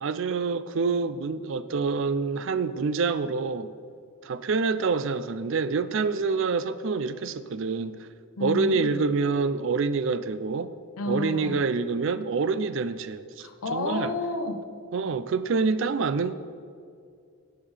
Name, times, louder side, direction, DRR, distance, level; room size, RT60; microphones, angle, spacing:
voice 1, 0.0-3.7 4.2-8.1 8.4-10.7 11.1-14.1 14.9-16.3, right 4 dB, 60° right, 13 dB, 0.4 m, -27 dB
voice 2, 8.4-9.0 11.0-11.6 13.4-14.6, left 2 dB, 85° left, 6 dB, 0.9 m, -31 dB
17.5 x 6.8 x 3.4 m, 2.3 s
head